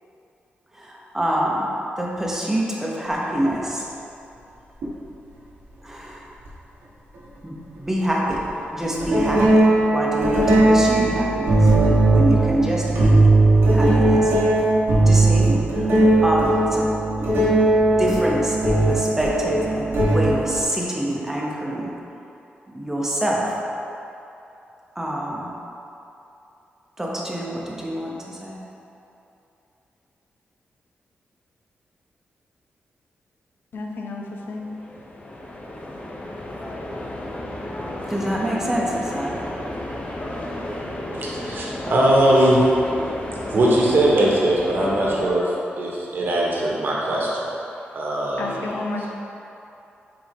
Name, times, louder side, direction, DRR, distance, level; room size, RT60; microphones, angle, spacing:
voice 1, 0.7-1.7 2.0-3.9 5.8-6.2 7.4-8.4 8.7-9.6 9.9-11.6 12.1-13.3 13.7-14.3 15.1-15.9 16.2-16.9 18.0-21.9 22.7-23.6 24.9-25.5 27.0-28.6 38.1-39.4, right 1 dB, 10° right, -4 dB, 1.0 m, -26 dB
sound 1, 4.8-4.9 6.5-6.6 8.3-8.5 9.0-20.6, right 2 dB, 90° right, 1.2 m, -18 dB
voice 2, 33.7-34.7 48.4-49.1, left 2 dB, 65° left, 0 dB, 0.7 m, -31 dB
sound 2, 34.4-45.3, left 1 dB, 35° left, 0.7 m, -32 dB
voice 3, 41.1-42.6 43.5-47.5 47.9-48.6, right 1 dB, 60° right, -4 dB, 1.2 m, -20 dB
6.1 x 4.9 x 3.6 m, 2.8 s
cardioid pair, 100°, 4 cm